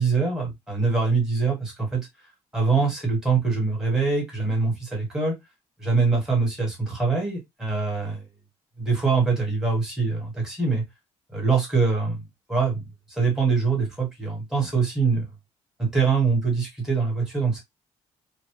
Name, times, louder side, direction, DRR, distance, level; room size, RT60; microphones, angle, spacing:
voice 1, 0.0-2.1 2.5-5.4 5.8-8.3 8.8-10.8 11.3-15.3 15.8-17.6, right 4 dB, 5° right, 1.2 m, -24 dB
2.7 x 2.1 x 3.0 m
cardioid pair, 170°, 12 cm